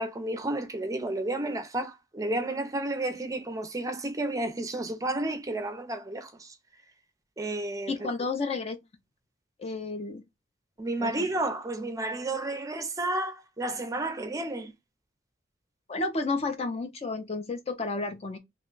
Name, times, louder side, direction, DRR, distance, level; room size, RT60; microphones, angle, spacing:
voice 1, 0.0-6.5 7.4-8.1 10.8-14.7, right 2 dB, 20° right, 0.5 m, -31 dB
voice 2, 7.9-8.8 9.6-10.2 11.0-11.3 15.9-18.4, left 3 dB, 35° left, 0.5 m, -31 dB
2.9 x 2.2 x 3.7 m
head